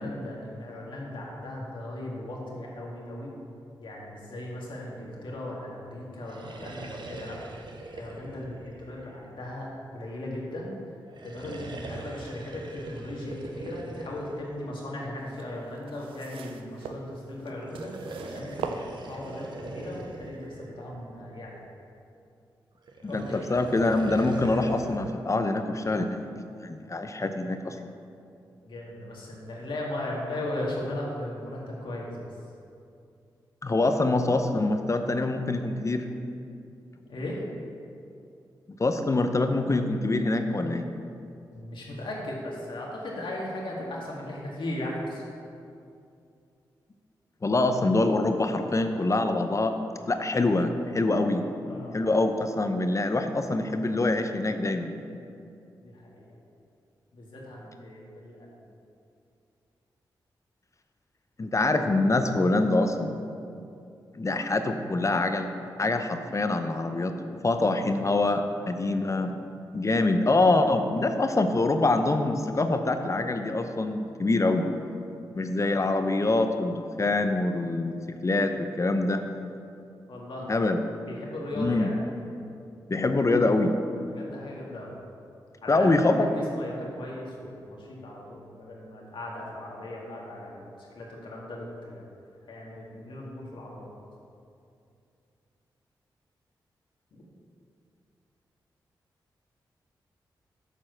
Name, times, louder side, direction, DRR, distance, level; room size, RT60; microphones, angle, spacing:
voice 1, 0.0-3.3 3.8-7.4 7.9-10.7 11.2-17.9 18.2-21.6 23.0-24.0 27.4-27.5 28.6-32.4 37.1-37.4 41.5-45.2 51.7-52.2 55.8-56.4 57.1-58.6 68.6-68.9 80.1-80.5 81.1-81.9 84.1-84.9 85.6-92.0 92.5-93.9 97.1-97.2, left 1 dB, 70° left, -3 dB, 1.8 m, -37 dB
sound 1, 6.1-9.8 11.1-15.4 17.6-21.6 22.9-25.1, right 2 dB, 60° right, 0.8 m, -42 dB
sound 2, 15.2-19.5 20.3-20.4, right 6 dB, 90° right, 0.4 m, -40 dB
voice 2, 23.0-26.3 26.6-27.8 33.6-36.1 38.8-40.9 47.4-49.8 50.1-51.5 51.9-54.9 61.4-63.1 64.1-65.5 65.8-67.2 67.4-69.4 69.7-74.7 75.3-79.2 80.5-80.8 81.6-81.9 82.9-83.8 85.7-86.3, left 2 dB, 35° left, 7 dB, 0.7 m, -25 dB
7.3 x 4.3 x 6.5 m, 2.5 s
supercardioid pair, 45°, 9 cm